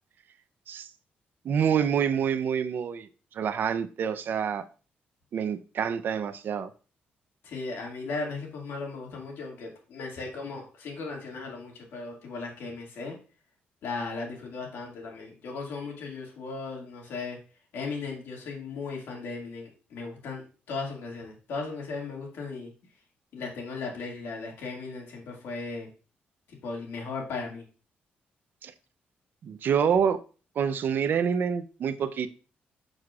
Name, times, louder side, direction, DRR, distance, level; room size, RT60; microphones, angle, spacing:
voice 1, 1.4-3.1 3.3-4.7 5.3-6.7 28.6-28.7 29.4-30.2 30.6-32.3, right 7 dB, 60° right, 12 dB, 0.5 m, -27 dB
voice 2, 7.4-13.2 13.8-17.4 17.7-20.4 20.7-22.7 23.3-25.9 26.6-27.6, left 4 dB, 85° left, 0 dB, 2.0 m, -36 dB
6.5 x 6.3 x 2.4 m, 0.37 s
cardioid pair, 115°, 4 cm